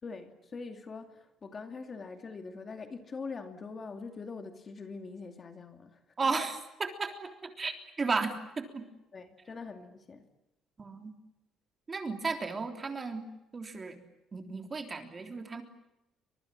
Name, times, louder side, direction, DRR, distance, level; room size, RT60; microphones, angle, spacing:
voice 1, 0.0-6.0 9.1-10.3, left 4 dB, 25° left, 7 dB, 2.5 m, -43 dB
voice 2, 6.2-7.3 7.6-8.8 10.8-11.1 11.9-13.3 13.5-14.0 14.3-15.6, right 4 dB, 20° right, 6 dB, 3.4 m, -34 dB
30.0 x 25.5 x 7.6 m, 0.93 s
cardioid pair, 175°, 0 cm